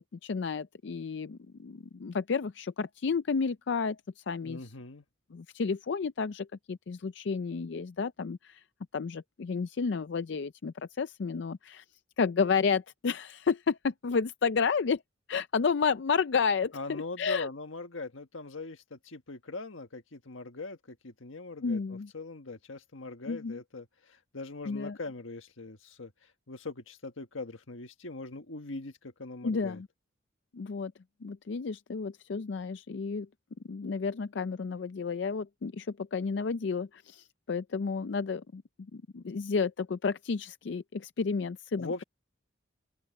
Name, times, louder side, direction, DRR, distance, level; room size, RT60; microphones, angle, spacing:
voice 1, 0.0-4.6 5.3-8.6 8.9-11.8 12.2-15.0 15.3-17.5 21.6-22.1 23.3-23.6 24.7-25.0 29.4-29.9 30.5-30.9 31.2-33.3 33.7-38.6 38.9-42.0, left 5 dB, 65° left, 0.4 m, -31 dB
voice 2, 4.4-5.0 16.7-26.1 26.5-29.8 41.8-42.0, left 3 dB, 90° left, 1.6 m, -41 dB
open air
head